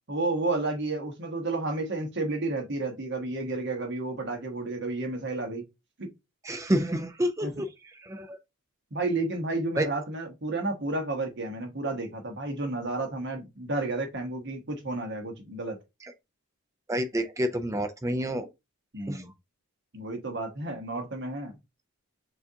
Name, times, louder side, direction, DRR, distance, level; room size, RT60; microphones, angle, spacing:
voice 1, 0.1-5.6 6.0-6.1 7.4-7.5 8.9-15.8 18.9-19.3 19.9-21.6, right 2 dB, 55° right, 1.2 m, -31 dB
voice 2, 6.4-8.4 9.8-9.9 16.0-16.1 16.9-18.5 19.1-19.3, equal, 15° right, 0.4 m, -29 dB
6.6 x 2.4 x 2.8 m
head